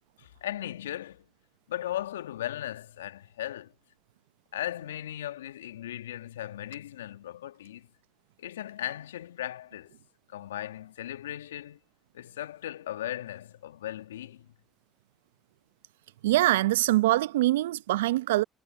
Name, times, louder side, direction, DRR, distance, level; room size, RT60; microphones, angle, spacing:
voice 1, 0.2-1.3 1.7-3.7 4.5-7.9 8.4-9.9 10.3-11.8 12.1-14.5, left 12 dB, 85° left, 2.2 m, -37 dB
voice 2, 16.2-18.4, right 16 dB, 80° right, 0.8 m, -23 dB
figure-of-eight pair, 50°, 0 cm